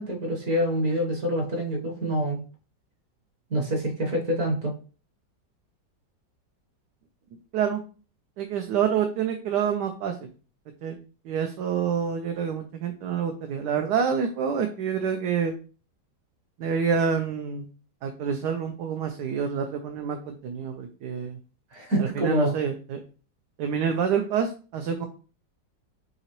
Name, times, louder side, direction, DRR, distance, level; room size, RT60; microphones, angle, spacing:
voice 1, 0.0-2.4 3.5-4.7 21.7-22.6, equal, 55° right, 1 dB, 1.5 m, -26 dB
voice 2, 8.4-10.1 10.8-11.0 11.3-15.5 16.6-17.7 18.0-21.4 22.2-23.0 23.6-25.1, right 7 dB, 75° right, 5 dB, 1.1 m, -27 dB
5.5 x 2.9 x 2.9 m, 0.37 s
omnidirectional pair, 1.9 m